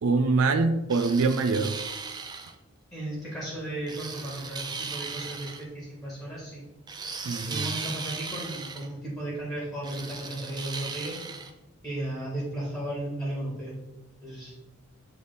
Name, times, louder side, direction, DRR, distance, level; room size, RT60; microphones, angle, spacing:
voice 1, 0.0-1.8 7.2-7.7, right 3 dB, 85° right, 7 dB, 0.4 m, -24 dB
sound 1, 0.9-2.5 3.9-5.6 6.9-8.9 9.8-11.5, right 5 dB, 20° right, 0.4 m, -37 dB
voice 2, 2.9-6.6 7.5-11.2 11.8-13.8 14.2-14.5, right 1 dB, 15° left, -6 dB, 2.0 m, -35 dB
7.9 x 3.4 x 4.0 m, 1.0 s
head